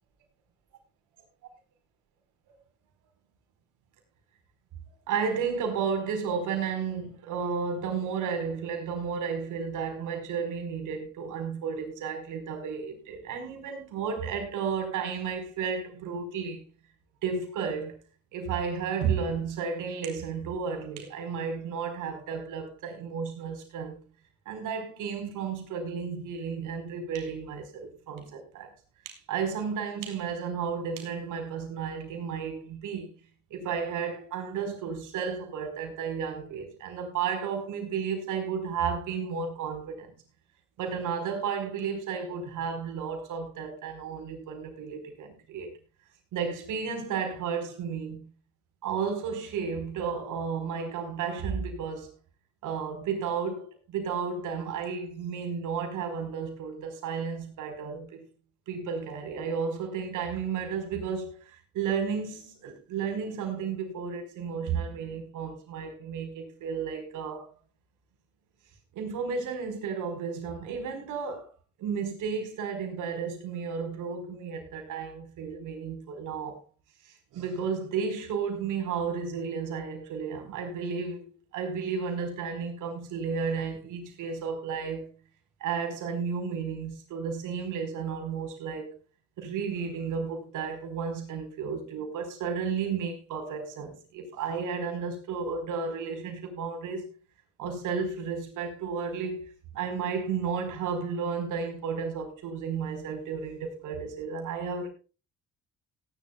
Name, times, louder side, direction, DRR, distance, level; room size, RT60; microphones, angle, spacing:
voice 1, 5.1-16.6 17.2-18.0 18.3-24.0 24.5-28.7 29.0-33.1 33.5-40.1 40.8-45.7 46.3-48.2 48.8-52.1 52.6-58.3 58.7-67.5 68.9-71.5 71.8-76.6 77.0-85.1 85.6-88.9 89.4-97.1 97.6-104.9, right 6 dB, 85° right, 4.8 m, -33 dB
18.0 x 11.5 x 2.4 m
cardioid pair, 90°, 30 cm